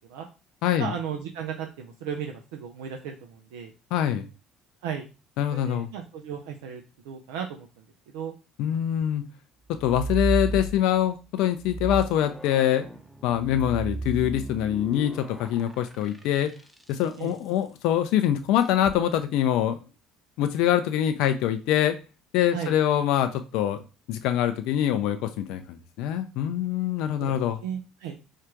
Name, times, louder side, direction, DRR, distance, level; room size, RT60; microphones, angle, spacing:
voice 1, 0.8-3.7 4.8-5.1 5.5-7.8 8.1-8.3 17.2-17.3 22.5-22.8 27.2-27.3 27.6-28.2, right 7 dB, 80° right, 3 dB, 0.5 m, -35 dB
voice 2, 3.9-4.2 5.4-5.9 8.6-9.3 9.8-12.9 13.2-16.5 16.9-19.8 20.4-22.0 22.3-23.8 24.1-27.6, left 11 dB, 70° left, 9 dB, 0.4 m, -24 dB
sound 1, 9.7-11.2 11.6-17.1 18.7-19.0, right 3 dB, 10° right, 0.8 m, -33 dB
4.5 x 2.4 x 4.5 m, 0.31 s
hypercardioid pair, 65°, 0 cm